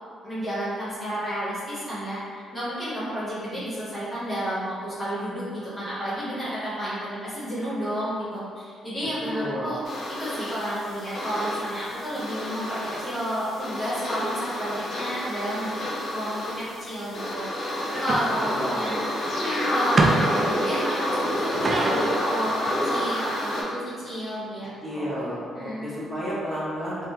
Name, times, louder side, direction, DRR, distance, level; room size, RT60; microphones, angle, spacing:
voice 1, 0.2-9.8 10.1-15.8 16.1-17.5 17.9-19.0 19.3-25.2 25.5-26.0, equal, 25° left, -10 dB, 1.1 m, -31 dB
voice 2, 9.2-9.7 18.2-19.0 20.4-20.6 24.8-27.1, equal, 20° right, -7 dB, 1.0 m, -31 dB
sound 1, 9.8-23.6, equal, 60° left, 0.8 m, -29 dB
sound 2, 18.1-18.2 19.3-19.4 20.0-20.4 21.4-23.1, right 2 dB, 35° right, 0.3 m, -24 dB
3.5 x 2.1 x 2.7 m, 2.1 s
cardioid pair, 90°, 0 cm